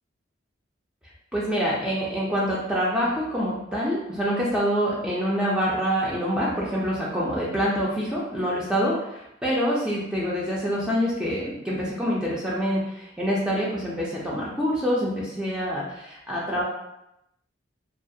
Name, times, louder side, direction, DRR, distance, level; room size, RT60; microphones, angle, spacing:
voice 1, 1.3-16.6, equal, 5° right, -6 dB, 0.3 m, -26 dB
2.3 x 2.1 x 2.6 m, 0.85 s
head